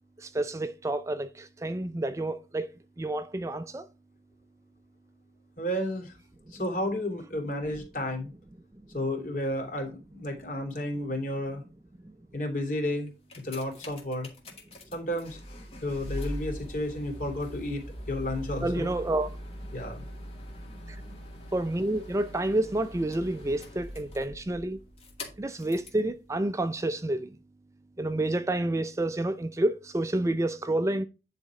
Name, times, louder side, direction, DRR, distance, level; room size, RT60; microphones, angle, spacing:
voice 1, 0.2-2.7 3.0-3.9 18.6-19.3 20.9-21.0 21.5-24.8 25.4-27.4 28.0-31.0, right 1 dB, 15° right, 0.4 m, -29 dB
voice 2, 5.6-6.2 6.5-8.3 8.9-11.6 12.3-13.1 13.4-14.3 14.9-15.4 15.8-18.9 19.7-20.0, left 1 dB, 50° left, 2.9 m, -32 dB
sound 1, 13.1-26.1 26.8-26.9, equal, 35° left, 2.1 m, -42 dB
9.9 x 4.2 x 4.7 m
head